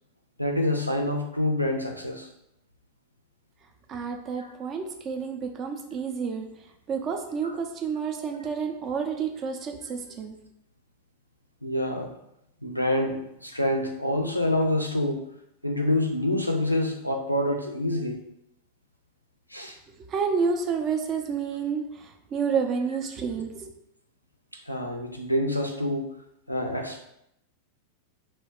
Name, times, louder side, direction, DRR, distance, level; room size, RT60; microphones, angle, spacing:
voice 1, 0.4-2.3 4.4-4.5 7.4-7.6 11.6-12.1 12.6-15.2 15.6-18.2 19.5-19.8 24.5-26.0 26.5-27.1, left 1 dB, 90° left, 3 dB, 0.4 m, -27 dB
voice 2, 3.9-6.5 6.9-10.3 20.1-23.7, right 6 dB, 30° right, 4 dB, 0.4 m, -29 dB
2.4 x 2.2 x 3.5 m, 0.79 s
figure-of-eight pair, 90°, 0 cm